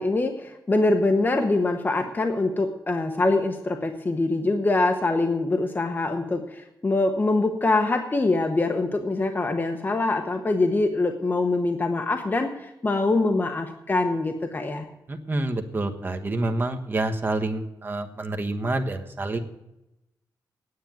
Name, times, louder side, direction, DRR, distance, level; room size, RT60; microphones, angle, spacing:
voice 1, 0.0-14.9, left 2 dB, 25° left, 5 dB, 1.0 m, -24 dB
voice 2, 15.1-19.4, right 2 dB, 30° right, 5 dB, 1.3 m, -28 dB
9.7 x 9.0 x 9.2 m, 0.90 s
cardioid pair, 100°, 7 cm